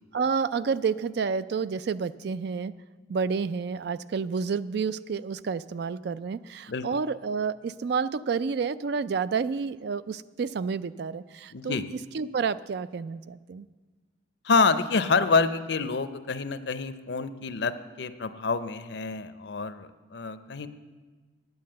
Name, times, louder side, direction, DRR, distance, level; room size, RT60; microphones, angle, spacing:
voice 1, 0.1-2.8 3.1-13.7, right 5 dB, 55° right, 16 dB, 0.3 m, -30 dB
voice 2, 11.5-11.8 14.4-20.7, left 4 dB, 60° left, 12 dB, 0.6 m, -27 dB
9.5 x 9.4 x 7.7 m, 1.3 s
head